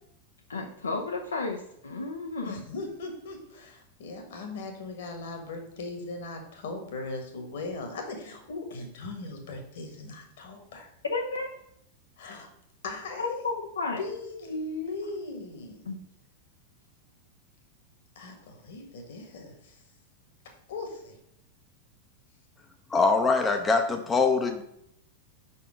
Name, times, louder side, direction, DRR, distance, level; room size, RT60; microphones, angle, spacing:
voice 1, 0.5-2.6 11.1-11.5 13.2-14.0 15.9-16.0, left 3 dB, 75° left, 2 dB, 0.6 m, -32 dB
voice 2, 2.4-10.9 12.2-12.5 12.8-13.5 14.0-16.0 18.1-19.8 20.7-21.1, left 3 dB, 55° left, 4 dB, 1.5 m, -38 dB
voice 3, 22.9-24.6, left 4 dB, 15° left, 5 dB, 0.6 m, -23 dB
5.4 x 4.3 x 5.1 m, 0.74 s
figure-of-eight pair, 90°, 0 cm